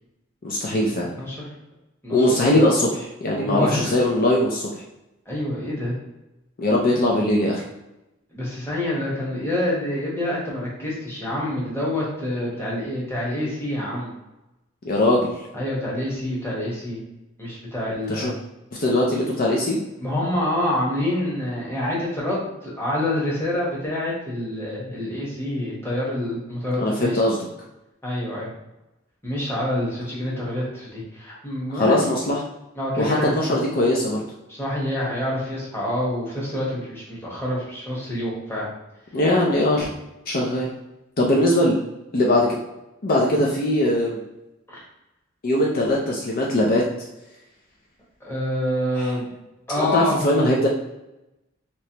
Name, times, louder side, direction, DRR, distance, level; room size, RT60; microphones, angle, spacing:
voice 1, 0.4-1.1 2.1-4.8 6.6-7.6 14.8-15.3 18.1-18.3 18.8-19.8 26.8-27.4 31.7-32.4 33.0-34.2 39.1-39.9 40.3-40.7 41.2-41.8 42.1-42.5 43.0-44.2 45.4-46.8 48.9-49.1 49.8-50.7, left 1 dB, 45° left, -2 dB, 0.5 m, -20 dB
voice 2, 2.0-2.4 3.4-3.9 5.3-6.0 8.3-14.1 15.5-17.0 17.4-18.3 20.0-27.2 28.0-28.5 29.2-32.1 32.8-33.5 34.5-38.7 44.7-44.8 48.2-49.3 49.7-50.2, left 1 dB, 15° left, -5 dB, 1.1 m, -27 dB
3.2 x 3.0 x 2.8 m, 0.96 s
head